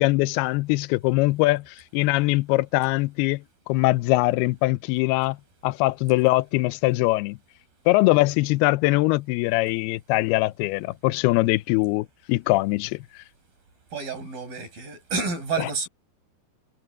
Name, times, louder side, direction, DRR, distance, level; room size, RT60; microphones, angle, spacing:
voice 1, 0.0-3.4 3.7-5.4 5.6-7.4 7.9-13.0, left 21 dB, 80° left, 2.4 m, -22 dB
voice 2, 13.9-15.9, right 4 dB, 55° right, 9.6 m, -29 dB
omnidirectional pair, 4.8 m